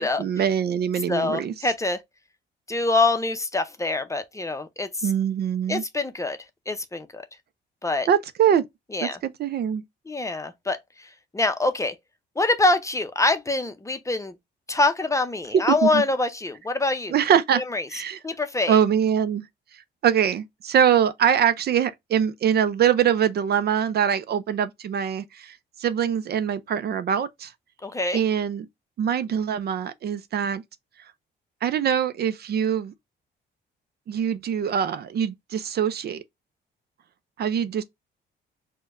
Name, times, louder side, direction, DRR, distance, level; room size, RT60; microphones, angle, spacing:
voice 1, 0.0-1.5 5.0-5.8 8.1-8.6 9.0-9.8 15.5-16.0 17.1-17.6 17.9-18.2 18.7-19.5 19.7-27.5 28.1-28.7 29.0-30.6 31.6-32.9 34.1-36.2 37.4-37.8, right 8 dB, 55° right, 0.5 m, -23 dB
voice 2, 1.1-2.0 2.7-5.1 5.7-6.4 6.7-7.2 7.8-8.1 8.9-9.2 10.1-12.0 12.4-14.3 14.7-17.1 17.5-17.8 18.2-18.8 27.8-28.2, left 2 dB, 15° left, 0.6 m, -25 dB
4.4 x 2.2 x 2.5 m
cardioid pair, 90°, 20 cm